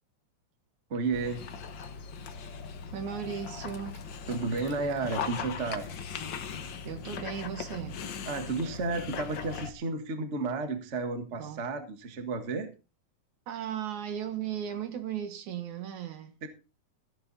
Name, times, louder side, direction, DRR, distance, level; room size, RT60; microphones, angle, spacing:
voice 1, 0.9-1.4 4.3-5.9 8.2-12.7 16.4-16.5, right 3 dB, 35° right, 1.3 m, -32 dB
Dog, 1.1-9.7, left 6 dB, 60° left, 1.2 m, -39 dB
voice 2, 2.9-4.0 6.8-8.0 11.4-11.6 13.5-16.3, right 9 dB, 70° right, 2.8 m, -36 dB
15.5 x 9.3 x 4.2 m
omnidirectional pair, 3.7 m